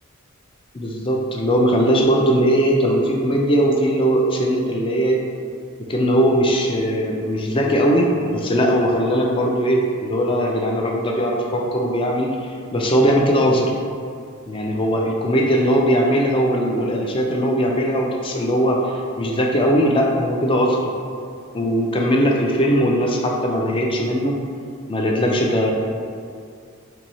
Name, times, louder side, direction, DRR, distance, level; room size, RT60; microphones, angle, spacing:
voice 1, 0.7-5.2 5.9-12.4 12.7-13.7 14.5-20.8 21.5-24.4 24.9-25.7, equal, 25° left, -1 dB, 0.4 m, -19 dB
2.9 x 2.7 x 4.0 m, 2.3 s
head